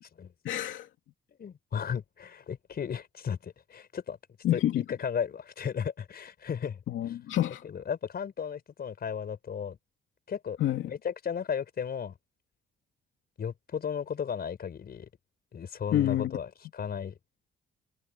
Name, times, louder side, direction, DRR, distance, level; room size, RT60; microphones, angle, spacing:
voice 1, 0.4-0.9 4.4-4.8 6.9-7.6 10.6-10.8 15.9-16.3, left 12 dB, 80° left, 2.6 m, -27 dB
voice 2, 1.4-4.2 4.5-6.8 7.6-9.8 10.3-10.6 10.8-12.2 13.4-15.1 15.5-17.2, left 7 dB, 50° left, 5.0 m, -35 dB
cardioid pair, 90°, 20 cm